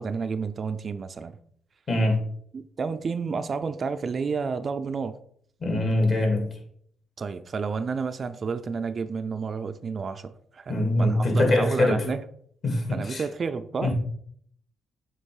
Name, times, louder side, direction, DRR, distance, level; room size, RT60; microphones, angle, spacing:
voice 1, 0.0-1.4 2.5-5.2 7.2-12.2 12.9-13.9, right 5 dB, 45° right, 0.4 m, -30 dB
voice 2, 1.9-2.2 5.6-6.5 10.7-12.0 12.6-13.2 13.8-13.9, left 1 dB, 45° left, 2.2 m, -23 dB
7.3 x 3.0 x 4.8 m
cardioid pair, 90°, 0 cm